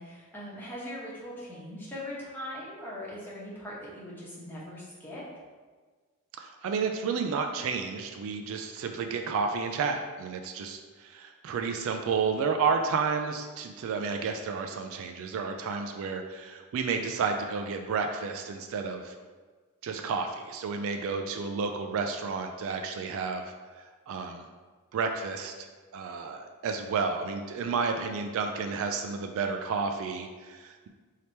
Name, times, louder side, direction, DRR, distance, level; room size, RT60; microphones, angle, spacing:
voice 1, 0.0-5.3, left 1 dB, 10° left, -8 dB, 1.0 m, -40 dB
voice 2, 6.4-19.2 19.8-23.5 24.1-24.5 24.9-30.9, right 5 dB, 65° right, 5 dB, 0.3 m, -31 dB
3.3 x 2.8 x 4.3 m, 1.4 s
head